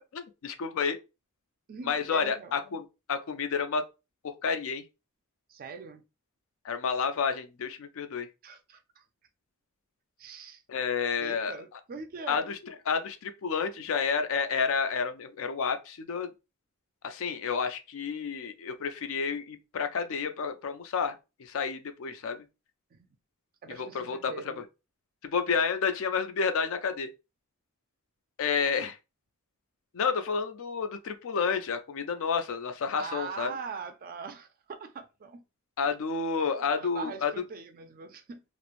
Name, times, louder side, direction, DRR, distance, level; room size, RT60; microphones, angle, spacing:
voice 1, 0.1-1.0 1.9-2.8 3.1-3.8 4.2-4.8 6.6-8.3 10.7-11.5 12.3-12.5 12.9-16.3 17.0-22.4 23.8-24.3 25.2-27.1 28.4-29.0 29.9-33.5 35.8-37.3, left 5 dB, 65° left, 0.4 m, -30 dB
voice 2, 1.7-2.6 5.5-6.0 8.4-9.0 10.2-10.6 11.2-12.5 22.9-23.1 23.6-24.7 33.0-35.4 36.8-38.4, right 5 dB, 40° right, 0.3 m, -42 dB
3.0 x 2.0 x 2.4 m
head